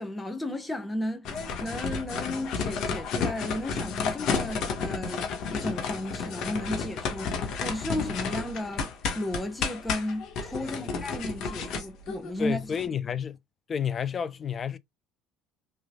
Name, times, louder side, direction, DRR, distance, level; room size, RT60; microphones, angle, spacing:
voice 1, 0.0-5.2 5.5-8.9 9.1-12.6, left 1 dB, 15° left, 1.2 m, -34 dB
sound 1, 1.2-12.8, left 5 dB, 60° left, 1.5 m, -32 dB
voice 2, 10.6-10.9 12.4-13.4 13.7-14.8, left 7 dB, 35° left, 0.6 m, -31 dB
4.7 x 3.3 x 2.4 m
supercardioid pair, 85°, 0 cm